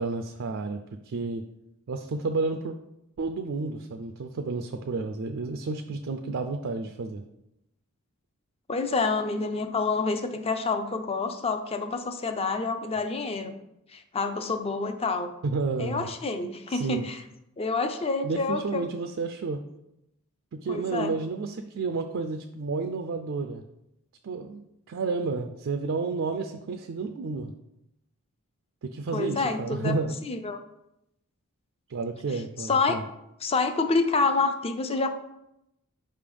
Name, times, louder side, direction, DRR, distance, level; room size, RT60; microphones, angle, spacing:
voice 1, 0.0-1.4 1.9-2.8 3.2-7.2 15.4-16.1 16.7-17.1 18.2-19.6 20.5-23.6 24.2-27.5 28.8-30.2 31.9-33.0, right 3 dB, 60° right, 5 dB, 0.4 m, -31 dB
voice 2, 8.7-13.5 13.9-15.3 15.8-17.2 17.6-18.8 20.7-21.1 29.1-29.9 30.2-30.6 32.6-33.0 33.4-35.1, left 4 dB, 25° left, 7 dB, 0.4 m, -28 dB
5.2 x 3.4 x 5.3 m, 0.84 s
head